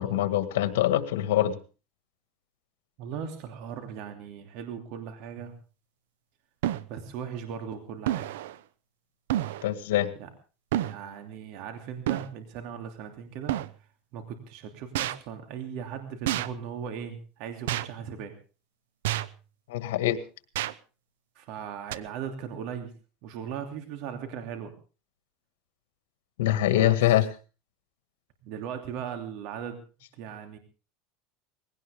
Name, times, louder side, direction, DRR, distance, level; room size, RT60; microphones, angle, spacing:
voice 1, 0.0-1.6 9.6-10.1 19.7-20.2 26.4-27.3, left 13 dB, 90° left, 11 dB, 1.9 m, -24 dB
voice 2, 3.0-5.5 6.9-8.3 10.2-10.3 10.8-13.5 14.1-18.3 21.4-22.9 23.2-24.7 26.7-27.0 28.4-29.8 30.2-30.6, right 8 dB, 60° right, 6 dB, 2.8 m, -38 dB
sound 1, 5.4-5.5 6.6-6.9 8.1-8.6 9.3-9.7 10.7-11.0 12.1-12.3 13.5-13.7 15.0-15.2 16.3-16.5 17.7-17.9 19.0-19.4 20.6-20.7 21.9-22.0, right 13 dB, 90° right, 0.8 m, -29 dB
20.5 x 17.0 x 3.6 m, 0.35 s
supercardioid pair, 135°, 0 cm